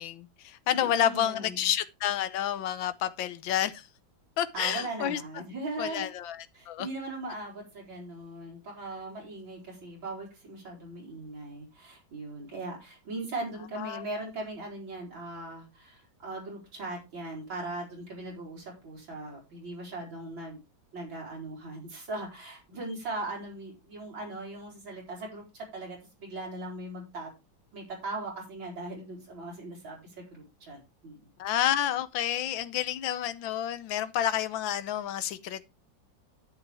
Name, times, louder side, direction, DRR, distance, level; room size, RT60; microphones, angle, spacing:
voice 1, 0.0-3.9 4.4-5.2 5.8-6.9 13.8-14.0 31.4-35.7, left 11 dB, 85° left, 1.6 m, -29 dB
voice 2, 0.7-1.6 4.5-6.1 6.5-20.6 20.9-27.3 27.7-31.3, right 2 dB, 85° right, 4.8 m, -39 dB
10.5 x 9.0 x 3.4 m
omnidirectional pair, 2.1 m